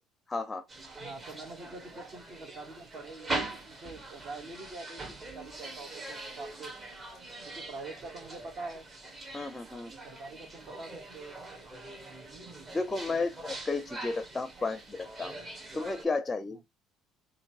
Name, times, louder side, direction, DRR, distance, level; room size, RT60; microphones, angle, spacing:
voice 1, 0.3-0.7 9.3-9.9 12.7-15.4 15.7-16.6, left 3 dB, 15° left, 0.5 m, -33 dB
sound 1, 0.7-16.0, right 2 dB, 35° right, 1.6 m, -42 dB
voice 2, 1.0-6.7 7.5-8.9 9.9-11.4 16.5-16.6, right 3 dB, 50° right, 1.7 m, -45 dB
3.9 x 2.6 x 4.6 m
supercardioid pair, 100°, 0 cm